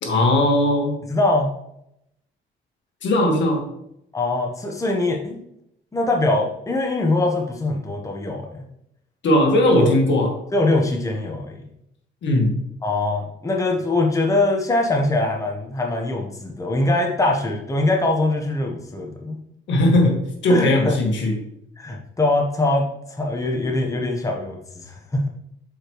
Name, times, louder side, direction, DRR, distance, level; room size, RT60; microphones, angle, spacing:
voice 1, 0.0-1.0 3.0-3.7 9.2-10.3 12.2-12.6 19.7-21.4, left 1 dB, 65° left, 2 dB, 1.6 m, -18 dB
voice 2, 1.1-1.5 4.1-5.4 5.9-8.6 9.8-9.9 10.5-11.6 12.8-19.4 20.5-20.9 21.8-25.3, left 2 dB, 15° left, 1 dB, 1.0 m, -22 dB
6.5 x 5.0 x 3.1 m, 0.78 s
cardioid pair, 90°, 20 cm